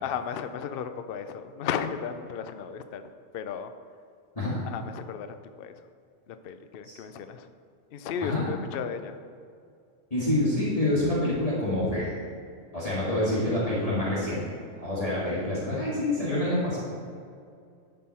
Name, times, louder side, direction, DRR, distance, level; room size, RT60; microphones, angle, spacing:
voice 1, 0.0-3.0 3.3-3.7 4.6-5.3 5.6-5.7 6.3-7.5 7.9-9.2, left 7 dB, 60° left, 9 dB, 0.7 m, -34 dB
voice 2, 10.1-12.1 12.7-14.4 14.8-16.8, left 1 dB, 30° left, -9 dB, 2.1 m, -27 dB
12.0 x 5.6 x 4.2 m, 2.3 s
omnidirectional pair, 1.3 m